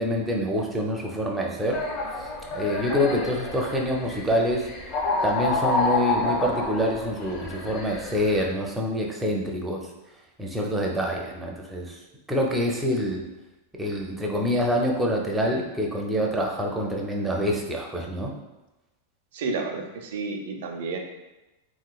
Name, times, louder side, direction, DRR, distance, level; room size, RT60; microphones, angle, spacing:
voice 1, 0.0-1.8 2.5-4.7 5.2-9.9 10.4-12.0 12.3-13.2 13.8-18.3, equal, 5° right, -1 dB, 0.4 m, -26 dB
sound 1, 1.7-8.5, left 2 dB, 35° left, 0.6 m, -29 dB
voice 2, 19.3-21.0, right 4 dB, 70° right, 3 dB, 0.5 m, -31 dB
3.1 x 2.9 x 2.3 m, 1.0 s
supercardioid pair, 145°, 0 cm